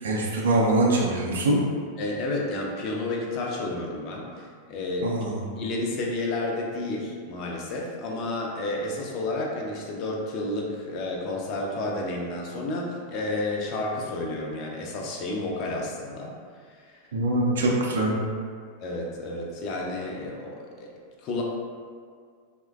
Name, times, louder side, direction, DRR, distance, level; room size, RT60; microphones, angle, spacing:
voice 1, 0.0-1.6 5.0-5.4 17.1-18.2, right 2 dB, 65° right, -2 dB, 0.4 m, -23 dB
voice 2, 2.0-5.1 5.4-16.4 16.8-17.0 18.8-20.9 21.2-21.4, left 2 dB, 40° left, -2 dB, 0.4 m, -31 dB
3.0 x 2.1 x 2.3 m, 2.1 s
figure-of-eight pair, 90°, 0 cm